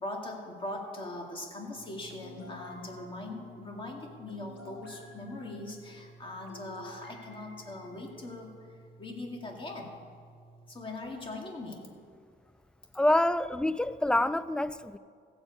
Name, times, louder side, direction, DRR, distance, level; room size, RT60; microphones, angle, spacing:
voice 1, 0.0-8.5 9.0-10.0 10.7-11.9, left 2 dB, 25° left, 2.2 m, -41 dB
sound 1, 0.7-8.4, left 2 dB, 70° left, 3.6 m, -53 dB
sound 2, 1.8-10.7, right 3 dB, 80° right, 1.4 m, -55 dB
voice 2, 12.9-15.0, left 1 dB, 5° left, 0.3 m, -26 dB
15.5 x 5.3 x 8.2 m
cardioid pair, 90°, 20 cm